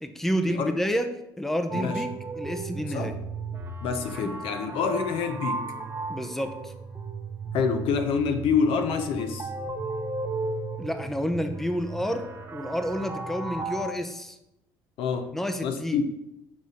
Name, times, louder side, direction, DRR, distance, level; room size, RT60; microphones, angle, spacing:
voice 1, 0.0-1.1 1.4-3.2 4.1-4.3 6.1-6.7 10.8-14.4 15.3-16.0, equal, 5° left, 7 dB, 0.7 m, -29 dB
sound 1, 1.7-13.9, right 3 dB, 25° right, 0.9 m, -35 dB
voice 2, 3.8-5.6 7.5-9.5 15.0-15.3 15.6-16.0, left 6 dB, 70° left, 7 dB, 0.9 m, -27 dB
6.1 x 4.1 x 4.9 m, 0.89 s
supercardioid pair, 80°, 9 cm